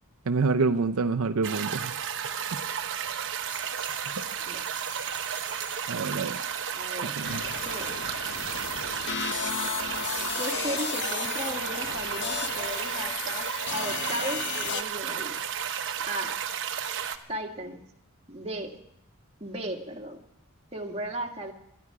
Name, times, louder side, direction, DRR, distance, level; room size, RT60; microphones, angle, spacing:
voice 1, 0.3-1.9 5.9-6.4 7.0-7.4, right 4 dB, 80° right, 8 dB, 0.6 m, -27 dB
sound 1, 1.4-17.2, right 8 dB, 60° right, 1.0 m, -33 dB
Rattle, 3.5-7.0 7.4-8.1, equal, 25° left, 4.1 m, -48 dB
voice 2, 6.7-7.1 7.4-7.9 10.4-15.4 16.1-16.3 17.3-17.8 18.3-18.8 19.4-20.2 20.7-21.5, right 1 dB, 30° right, 1 dB, 1.8 m, -36 dB
sound 2, 7.2-14.8, left 8 dB, 55° left, 0.6 m, -34 dB
19.5 x 13.0 x 4.8 m, 0.78 s
head